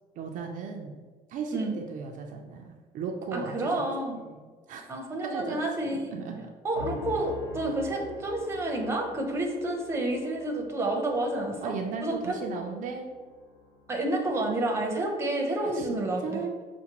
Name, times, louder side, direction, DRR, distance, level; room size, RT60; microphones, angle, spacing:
voice 1, 0.2-1.0 1.3-3.8 4.1-6.5 11.2-11.3 11.6-13.1 15.6-15.9 16.2-16.5, right 5 dB, 60° right, 2 dB, 0.4 m, -37 dB
voice 2, 3.3-4.2 4.9-6.2 6.6-11.7 12.0-12.4 13.9-16.4, right 1 dB, 15° right, 1 dB, 0.7 m, -29 dB
sound 1, 6.7-15.1, left 2 dB, 85° left, 1.0 m, -46 dB
5.8 x 2.1 x 2.9 m, 1.4 s
cardioid pair, 120°, 15 cm